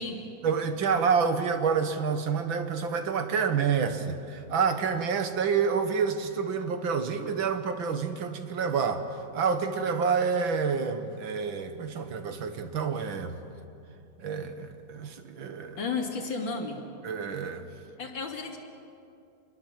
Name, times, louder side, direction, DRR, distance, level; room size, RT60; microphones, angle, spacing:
voice 1, 0.4-9.0 9.3-13.4 14.2-15.8 17.0-17.6, right 6 dB, 85° right, 8 dB, 2.2 m, -28 dB
voice 2, 15.8-16.8 18.0-18.6, left 4 dB, 75° left, 1 dB, 3.5 m, -33 dB
27.0 x 22.0 x 7.6 m, 2.6 s
omnidirectional pair, 2.1 m